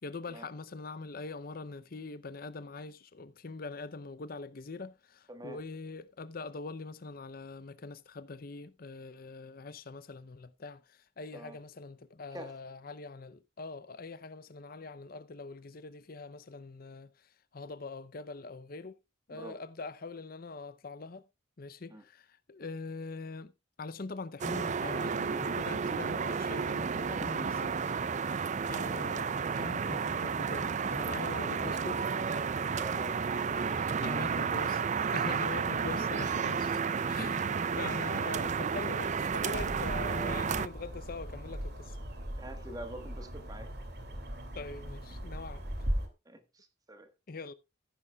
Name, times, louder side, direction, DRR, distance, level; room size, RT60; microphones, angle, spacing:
voice 1, 0.0-18.9 19.3-21.2 21.6-23.5 23.8-27.7 28.6-32.1 34.0-37.5 37.7-42.0 44.5-45.6 47.3-47.5, left 3 dB, 50° left, 0.6 m, -43 dB
voice 2, 5.3-5.6 11.3-11.6 12.3-12.6 19.3-19.6 21.9-22.0 32.7-33.2 33.6-34.3 35.8-35.9 42.4-43.7 46.2-47.1, right 1 dB, 20° right, 1.4 m, -46 dB
sound 1, 24.4-40.7, right 6 dB, 40° right, 0.4 m, -32 dB
sound 2, 39.5-46.1, equal, 55° right, 2.5 m, -39 dB
15.0 x 10.5 x 2.3 m
head